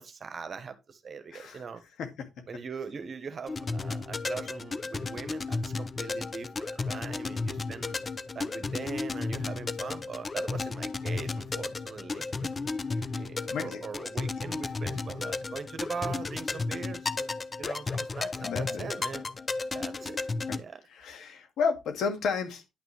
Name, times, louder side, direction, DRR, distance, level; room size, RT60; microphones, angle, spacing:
voice 1, 0.0-1.8 2.5-8.0 8.3-12.5 13.1-19.3 19.7-20.2 20.5-20.8, right 5 dB, 45° right, 1.2 m, -41 dB
voice 2, 1.3-1.6 2.0-2.3 13.0-13.1 13.5-13.8 18.4-18.9 20.5-20.6 20.9-22.7, left 5 dB, 75° left, 2.1 m, -32 dB
sound 1, 3.5-20.6, left 3 dB, 30° left, 0.6 m, -33 dB
10.5 x 6.0 x 3.3 m
cardioid pair, 90°, 0 cm